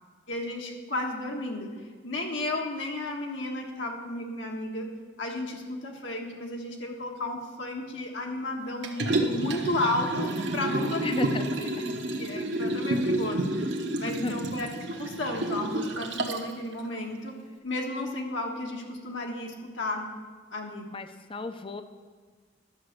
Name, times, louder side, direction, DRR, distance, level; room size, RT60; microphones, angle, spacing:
voice 1, 0.3-1.7 2.0-4.9 5.2-11.3 11.6-11.7 12.2-13.7 14.0-17.4 17.6-20.1 20.5-20.9, left 2 dB, 70° left, 0 dB, 1.4 m, -33 dB
Liquid, 8.8-16.5 16.9-17.0, right 1 dB, 65° right, 1.1 m, -30 dB
voice 2, 11.0-11.9 14.0-14.3 20.9-21.8, left 3 dB, 25° left, 9 dB, 0.6 m, -35 dB
11.5 x 7.0 x 6.6 m, 1.5 s
head